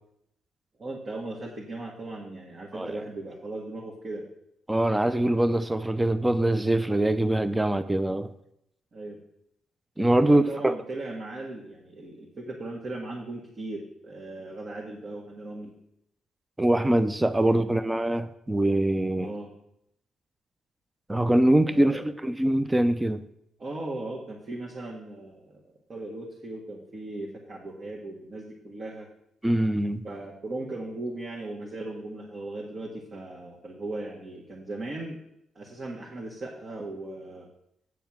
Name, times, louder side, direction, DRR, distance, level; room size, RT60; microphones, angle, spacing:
voice 1, 0.8-4.2 8.9-9.2 10.2-15.7 17.5-17.7 19.2-19.5 21.6-22.1 23.6-25.6 25.9-29.1 30.0-35.2 35.5-37.5, right 2 dB, 40° right, -1 dB, 1.7 m, -37 dB
voice 2, 4.7-8.3 10.0-10.8 16.6-19.3 21.1-23.2 29.4-30.0, right 1 dB, 10° right, 12 dB, 0.6 m, -23 dB
8.2 x 7.0 x 6.0 m, 0.77 s
cardioid pair, 90°, 0 cm